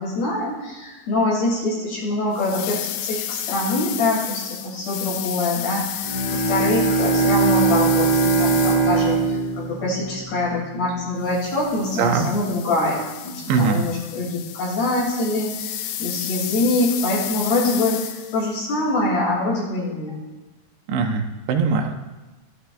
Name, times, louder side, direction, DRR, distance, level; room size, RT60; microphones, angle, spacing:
voice 1, 0.0-20.2, left 2 dB, 60° left, -5 dB, 8.1 m, -24 dB
sound 1, 2.3-9.4 11.2-18.5, left 12 dB, 80° left, 2.6 m, -32 dB
Bowed string instrument, 5.9-10.8, right 4 dB, 40° left, 4.0 m, -21 dB
voice 2, 13.5-13.8 20.9-22.0, right 5 dB, 75° right, 4 dB, 3.5 m, -21 dB
23.0 x 13.5 x 3.5 m, 1.2 s
omnidirectional pair, 5.2 m